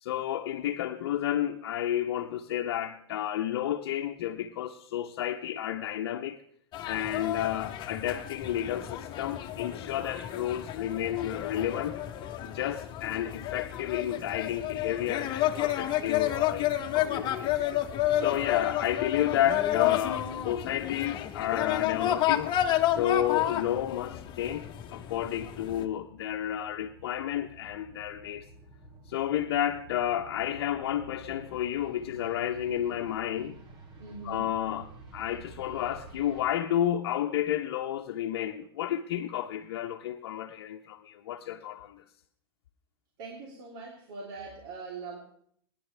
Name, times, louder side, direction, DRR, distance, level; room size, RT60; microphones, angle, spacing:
voice 1, 0.0-6.4 6.8-12.0 12.4-17.5 18.1-22.5 22.9-28.5 29.1-33.6 34.2-42.0, left 11 dB, 75° left, 0.9 m, -31 dB
sound 1, 6.7-25.8, left 12 dB, 35° left, 1.2 m, -31 dB
sound 2, 23.7-36.4, right 3 dB, 40° right, 2.8 m, -51 dB
voice 2, 34.0-34.5 43.2-45.2, right 4 dB, 60° right, 3.4 m, -42 dB
22.0 x 10.5 x 3.4 m
hypercardioid pair, 120°, 13 cm